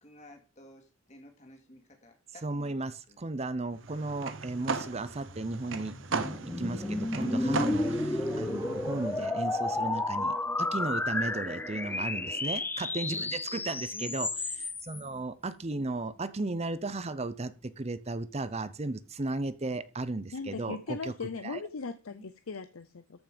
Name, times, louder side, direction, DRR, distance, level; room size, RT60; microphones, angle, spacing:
voice 1, 0.0-3.2 13.9-14.6 15.7-15.9 22.1-22.3, left 1 dB, 35° left, 2.4 m, -53 dB
voice 2, 2.4-6.3 6.6-14.3 14.8-21.1 21.4-21.6, right 2 dB, 30° right, 0.7 m, -35 dB
sound 1, 3.8-9.3, right 4 dB, 65° right, 1.0 m, -37 dB
sound 2, 5.3-15.0, left 2 dB, 10° left, 0.4 m, -32 dB
sound 3, 6.1-12.6, equal, 15° right, 2.0 m, -43 dB
voice 3, 20.3-23.2, left 4 dB, 85° left, 0.7 m, -39 dB
13.5 x 5.9 x 5.2 m
head